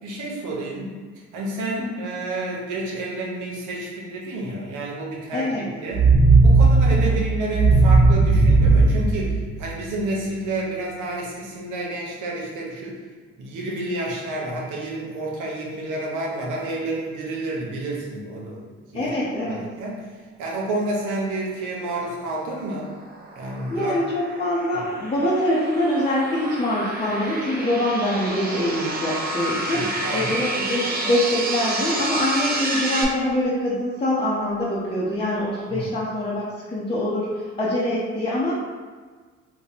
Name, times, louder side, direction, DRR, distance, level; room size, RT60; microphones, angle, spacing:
voice 1, 0.0-6.0 6.4-13.0 13.4-19.1 19.5-22.9 23.3-24.0 24.7-24.8 29.6-30.3 35.7-35.9, right 2 dB, 85° right, -3 dB, 0.9 m, -30 dB
voice 2, 5.3-5.6 6.9-7.2 18.9-19.6 23.7-29.9 30.1-38.5, left 1 dB, 20° left, -8 dB, 0.7 m, -24 dB
sound 1, 5.9-9.9, right 3 dB, 50° right, 1.1 m, -16 dB
sound 2, 22.2-33.0, right 2 dB, 30° right, 0.6 m, -29 dB
2.9 x 2.2 x 4.0 m, 1.5 s
cardioid pair, 90°, 30 cm